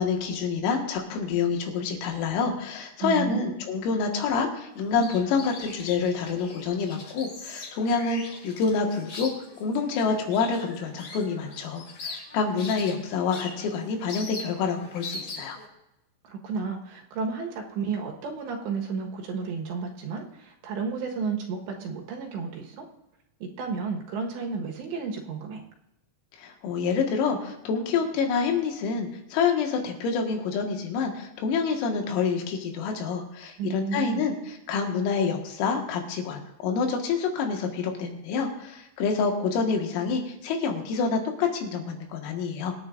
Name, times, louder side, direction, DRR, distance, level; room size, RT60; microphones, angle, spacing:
voice 1, 0.0-9.3 9.6-15.6 26.4-42.8, left 5 dB, 90° left, 2 dB, 4.3 m, -27 dB
voice 2, 3.0-3.5 16.2-22.9 23.4-25.6 33.6-34.3, right 5 dB, 70° right, 1 dB, 3.2 m, -32 dB
sound 1, 4.8-15.7, left 3 dB, 45° left, 3.1 m, -41 dB
24.0 x 9.6 x 2.5 m, 0.92 s
omnidirectional pair, 5.8 m